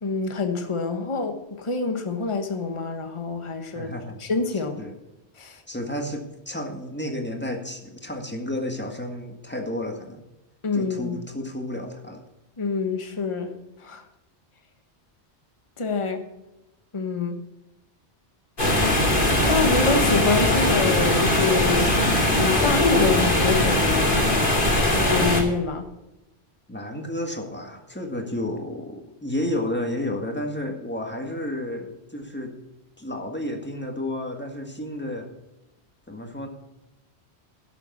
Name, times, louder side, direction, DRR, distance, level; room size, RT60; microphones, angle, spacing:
voice 1, 0.0-3.9 4.2-4.8 5.4-5.6 10.6-11.2 12.6-13.5 13.8-14.0 15.8-16.2 16.9-17.3 19.4-21.9 22.4-24.2 24.9-25.8, left 4 dB, 30° left, 5 dB, 1.2 m, -26 dB
voice 2, 3.7-4.3 4.8-5.0 5.7-10.2 10.7-12.2 26.7-32.5 33.0-35.3 36.1-36.5, left 1 dB, 10° left, 3 dB, 1.6 m, -31 dB
sound 1, 18.6-25.4, left 1 dB, 50° left, 2.4 m, -20 dB
12.0 x 7.0 x 7.1 m, 0.96 s
omnidirectional pair, 1.1 m